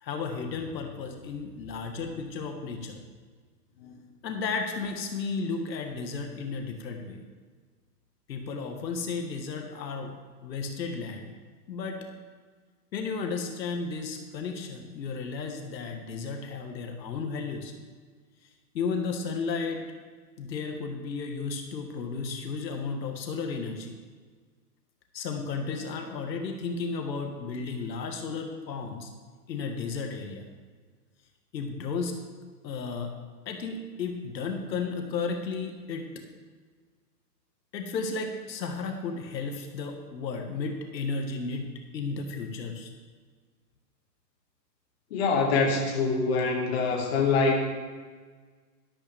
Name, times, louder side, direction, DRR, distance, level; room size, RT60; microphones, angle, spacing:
voice 1, 0.0-3.0 4.2-7.2 8.3-10.1 10.4-11.3 11.7-12.1 12.9-17.7 18.7-19.8 20.4-24.0 25.1-29.1 29.5-30.4 31.5-32.1 32.6-33.1 33.4-36.2 37.7-41.7 41.9-42.9, left 4 dB, 85° left, 4 dB, 1.7 m, -33 dB
voice 2, 45.1-47.6, left 4 dB, 40° left, -1 dB, 1.9 m, -24 dB
12.0 x 11.5 x 3.5 m, 1.5 s
hypercardioid pair, 175°, 50 cm